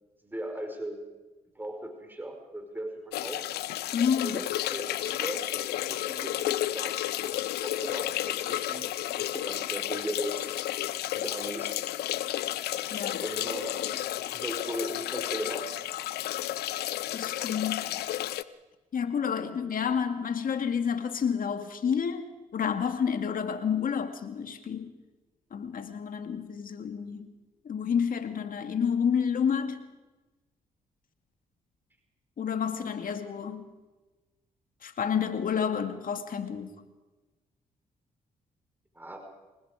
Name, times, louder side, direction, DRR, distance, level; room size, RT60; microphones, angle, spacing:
voice 1, 0.2-1.0 1.5-3.4 4.2-7.0 7.3-8.9 9.2-10.5 11.1-12.2 13.2-15.7 38.9-39.2, right 1 dB, 10° right, 3 dB, 4.8 m, -38 dB
sound 1, 3.1-18.4, left 14 dB, 75° left, 0.7 m, -32 dB
voice 2, 3.9-4.4 12.9-13.2 17.1-18.0 18.9-24.9 25.5-27.3 27.6-29.8 32.4-33.7 34.8-36.7, left 7 dB, 60° left, 7 dB, 2.3 m, -29 dB
27.0 x 19.5 x 5.1 m, 1.2 s
hypercardioid pair, 45°, 17 cm